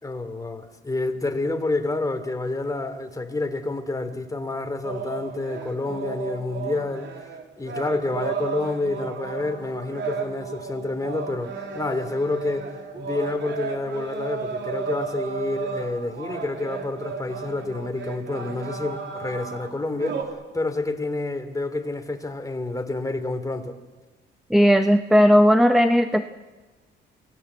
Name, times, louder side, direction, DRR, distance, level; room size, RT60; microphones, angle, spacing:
voice 1, 0.0-7.3 7.6-12.7 12.9-20.2 20.5-23.8, left 2 dB, 15° left, 7 dB, 3.0 m, -28 dB
sound 1, 4.8-20.2, right 5 dB, 65° right, 3.8 m, -34 dB
voice 2, 24.5-26.2, equal, ahead, 8 dB, 1.1 m, -16 dB
27.5 x 18.5 x 8.2 m, 1.2 s
cardioid pair, 90°, 20 cm